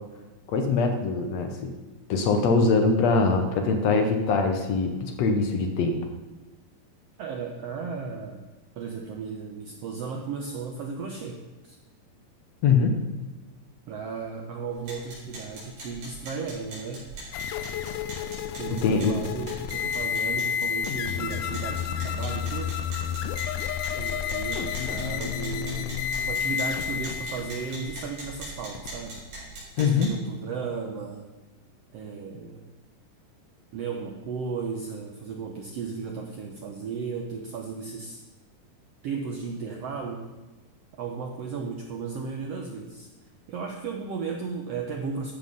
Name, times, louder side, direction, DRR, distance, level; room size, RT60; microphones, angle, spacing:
voice 1, 0.5-1.7 2.1-6.0 12.6-13.0 18.8-19.1 29.8-30.1, left 4 dB, 65° left, 5 dB, 1.7 m, -23 dB
voice 2, 7.2-8.4 8.8-11.8 13.9-17.0 18.6-22.7 24.0-29.2 29.8-31.3 31.9-32.6 33.7-38.2 39.0-40.3 41.0-43.1 43.5-45.3, right 5 dB, 90° right, 2 dB, 1.4 m, -35 dB
sound 1, 14.7-30.1, right 2 dB, 65° right, 5.9 m, -42 dB
sound 2, 17.3-29.2, left 8 dB, 80° left, 1.9 m, -31 dB
13.0 x 7.6 x 5.3 m, 1.2 s
omnidirectional pair, 4.1 m